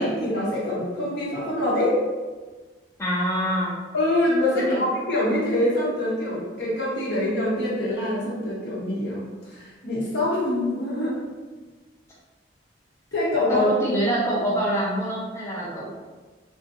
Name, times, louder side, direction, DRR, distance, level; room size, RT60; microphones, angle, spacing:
voice 1, 0.0-2.0 3.9-9.2 9.5-11.1 13.1-13.7, left 1 dB, 65° left, -7 dB, 1.0 m, -24 dB
voice 2, 3.0-3.7 4.6-4.8 13.5-15.9, right 1 dB, 15° left, -6 dB, 0.3 m, -25 dB
2.5 x 2.2 x 2.7 m, 1.3 s
head